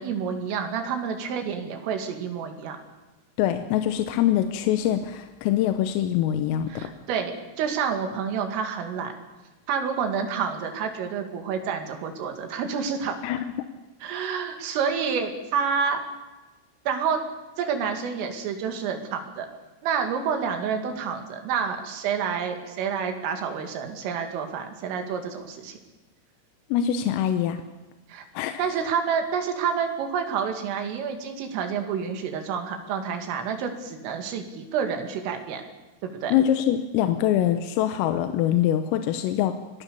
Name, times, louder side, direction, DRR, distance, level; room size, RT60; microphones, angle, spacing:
voice 1, 0.0-2.8 6.7-9.1 9.7-13.2 14.0-16.0 16.9-17.2 17.6-19.5 19.8-25.8 28.1-28.3 28.6-35.6 36.0-36.3, right 6 dB, 80° right, 5 dB, 4.9 m, -28 dB
voice 2, 3.4-6.9 13.2-13.4 26.7-27.6 28.4-28.6 36.3-39.8, left 11 dB, 85° left, 8 dB, 3.6 m, -24 dB
25.0 x 18.5 x 6.9 m, 1.1 s
omnidirectional pair, 5.8 m